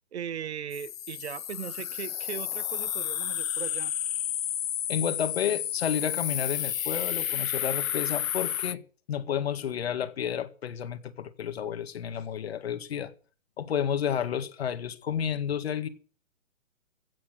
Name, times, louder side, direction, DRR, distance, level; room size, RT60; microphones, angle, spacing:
voice 1, 0.1-3.9, right 8 dB, 55° right, 1.0 m, -38 dB
sound 1, 0.7-8.7, left 11 dB, 85° left, 0.6 m, -31 dB
voice 2, 4.9-8.8 9.1-13.1 13.6-15.9, left 8 dB, 50° left, 2.0 m, -31 dB
16.0 x 7.2 x 9.5 m
hypercardioid pair, 165°, 39 cm